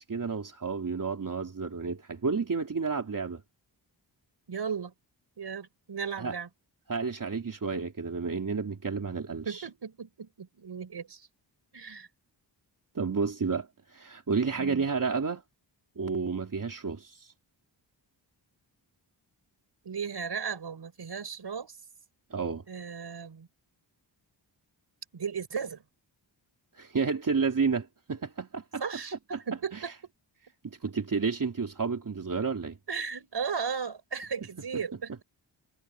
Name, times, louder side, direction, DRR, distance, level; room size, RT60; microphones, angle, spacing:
voice 1, 0.0-3.4 6.2-6.3 6.9-9.7 13.0-15.4 16.0-17.3 22.3-22.6 26.8-28.8 29.3-29.4 30.6-32.8, right 5 dB, 45° right, 3.5 m, -31 dB
voice 2, 4.5-4.9 5.4-6.5 9.5-11.3 11.7-12.1 14.6-14.9 19.8-21.8 22.7-23.5 25.1-25.8 28.8-29.2 29.5-29.9 32.9-35.2, right 6 dB, 60° right, 5.6 m, -36 dB
wide cardioid pair, 140°, 45 cm